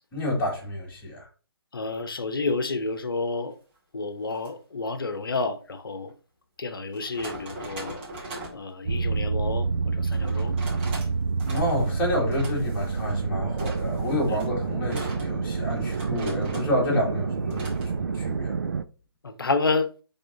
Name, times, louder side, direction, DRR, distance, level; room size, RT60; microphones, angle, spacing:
voice 1, 0.1-1.3 11.4-18.7, left 1 dB, 15° left, 2.4 m, -29 dB
voice 2, 1.7-3.6 3.9-6.1 6.6-8.0 8.5-10.5 14.3-14.4 19.2-19.9, left 3 dB, 60° left, 1.0 m, -29 dB
sound 1, 4.3-4.5 6.1-6.2 6.9-8.6 10.1-11.1 11.4-12.0 12.3-13.2 13.6-16.8 17.5-17.9, right 2 dB, 25° right, 1.9 m, -40 dB
sound 2, 8.9-18.8, right 4 dB, 55° right, 0.5 m, -28 dB
10.0 x 3.7 x 2.7 m
figure-of-eight pair, 145°, 13 cm